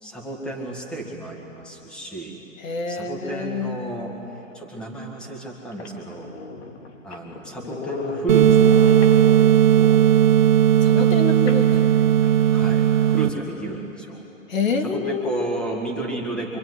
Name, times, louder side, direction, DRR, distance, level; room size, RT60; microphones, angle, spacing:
voice 1, 0.0-2.4 2.9-4.2 4.5-6.3 7.0-8.9 9.7-10.0 11.0-11.2 12.5-14.2 14.8-16.6, right 2 dB, ahead, 0 dB, 1.7 m, -32 dB
voice 2, 2.6-3.8 10.8-11.9 14.5-15.6, left 4 dB, 75° left, 5 dB, 2.7 m, -27 dB
sound 1, 4.8-4.9 5.4-5.5 5.7-9.8 11.5-12.6, left 3 dB, 55° left, 2.5 m, -35 dB
sound 2, 8.3-13.3, right 10 dB, 35° right, 1.0 m, -16 dB
26.0 x 24.0 x 9.6 m, 2.9 s
hypercardioid pair, 165°, 41 cm